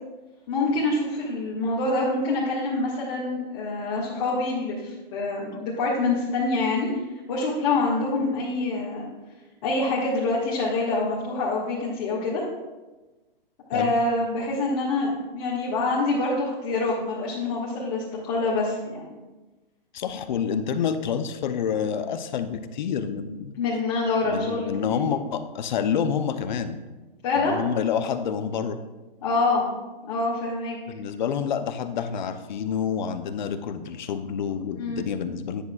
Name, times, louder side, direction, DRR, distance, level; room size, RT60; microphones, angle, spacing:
voice 1, 0.5-6.9 7.3-9.1 9.6-12.4 13.7-19.1 23.6-25.1 27.2-27.6 29.2-29.7 30.1-30.8 34.7-35.0, left 3 dB, 35° left, -6 dB, 1.7 m, -26 dB
voice 2, 19.9-23.5 24.2-26.8 27.4-28.8 30.9-35.6, left 7 dB, 50° left, 9 dB, 0.7 m, -28 dB
10.0 x 8.1 x 2.4 m, 1.2 s
hypercardioid pair, 145°, 29 cm